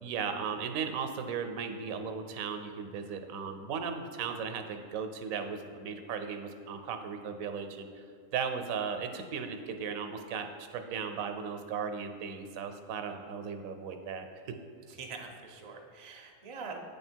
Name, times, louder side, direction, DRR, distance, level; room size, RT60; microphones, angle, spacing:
voice 1, 0.0-8.0 8.3-14.3, right 6 dB, 80° right, 7 dB, 1.0 m, -36 dB
voice 2, 14.9-16.8, right 4 dB, 40° right, 2 dB, 0.4 m, -44 dB
8.4 x 3.4 x 4.4 m, 2.2 s
omnidirectional pair, 1.4 m